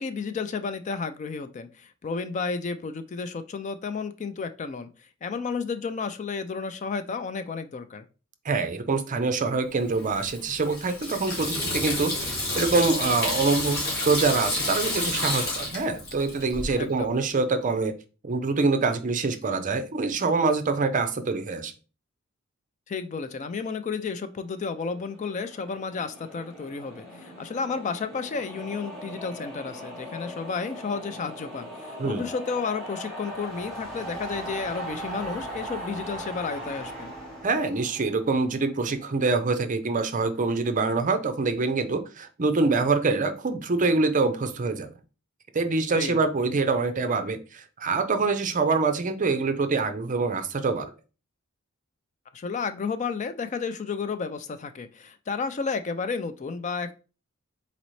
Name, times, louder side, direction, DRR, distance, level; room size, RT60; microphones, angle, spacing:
voice 1, 0.0-4.9 5.2-8.0 16.8-17.2 22.9-37.1 45.9-46.2 52.3-56.9, left 5 dB, 35° left, 0.4 m, -32 dB
voice 2, 8.4-17.9 18.2-21.7 32.0-32.3 37.4-44.9 45.5-50.9, right 3 dB, 40° right, 0.6 m, -25 dB
Water tap faucet / Sink (filling or washing), 10.0-16.7, left 2 dB, 50° left, 1.8 m, -30 dB
sound 1, 24.7-39.0, equal, ahead, 1.4 m, -39 dB
4.1 x 4.0 x 3.1 m
head